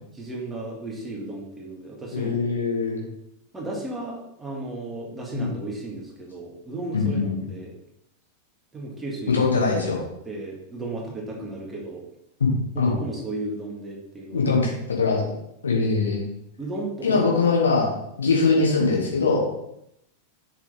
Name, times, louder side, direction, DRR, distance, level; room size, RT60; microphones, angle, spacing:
voice 1, 0.1-2.4 3.5-7.7 8.7-9.3 10.2-12.0 12.8-14.5 16.6-17.3, right 2 dB, 15° right, -2 dB, 2.0 m, -34 dB
voice 2, 2.1-3.1 5.3-5.5 6.9-7.5 9.3-10.0 12.4-12.9 14.3-15.2 15.6-16.2 17.0-17.9 18.2-19.4, left 4 dB, 70° left, -2 dB, 2.1 m, -22 dB
7.2 x 6.1 x 3.5 m, 0.80 s
figure-of-eight pair, 90°, 0 cm